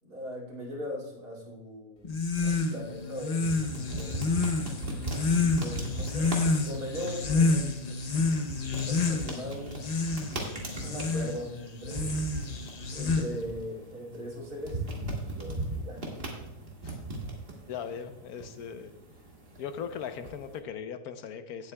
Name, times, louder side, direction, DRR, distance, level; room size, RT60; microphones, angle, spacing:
voice 1, 0.0-2.1 2.4-4.2 5.3-6.4 6.6-8.1 8.7-9.8 10.8-12.3 12.9-16.0, equal, 85° right, -3 dB, 3.2 m, -40 dB
Plaga de mosquitos, 2.0-13.6, left 3 dB, 35° left, 0.7 m, -29 dB
sound 1, 2.4-20.6, right 2 dB, 35° right, 2.0 m, -39 dB
voice 2, 17.7-18.9 19.6-21.7, left 7 dB, 75° left, 9 dB, 1.2 m, -39 dB
17.0 x 8.2 x 2.2 m, 0.95 s
omnidirectional pair, 1.6 m